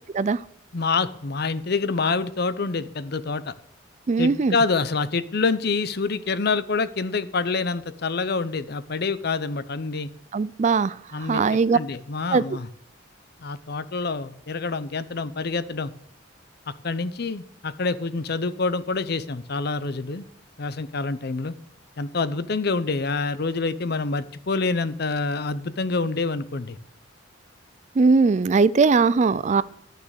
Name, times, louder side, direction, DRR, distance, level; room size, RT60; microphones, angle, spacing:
voice 1, 0.7-3.5 4.2-10.1 11.1-11.4 11.7-12.7 13.4-15.9 16.8-20.3 20.6-21.5 22.0-26.8, left 4 dB, 55° left, 15 dB, 0.7 m, -26 dB
voice 2, 4.1-4.6 10.3-11.8 12.3-12.4 28.0-29.6, right 4 dB, 35° right, 18 dB, 0.3 m, -20 dB
12.0 x 6.6 x 6.5 m, 0.70 s
head